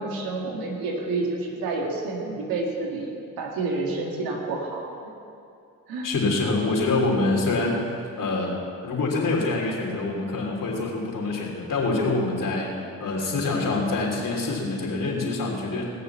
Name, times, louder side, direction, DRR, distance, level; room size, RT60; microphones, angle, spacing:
voice 1, 0.0-5.1 5.9-6.1, right 3 dB, 90° right, 0 dB, 1.9 m, -29 dB
voice 2, 6.0-7.8 8.2-15.8, left 3 dB, 65° left, -2 dB, 3.2 m, -25 dB
19.0 x 6.8 x 7.2 m, 2.5 s
supercardioid pair, 45°, 34 cm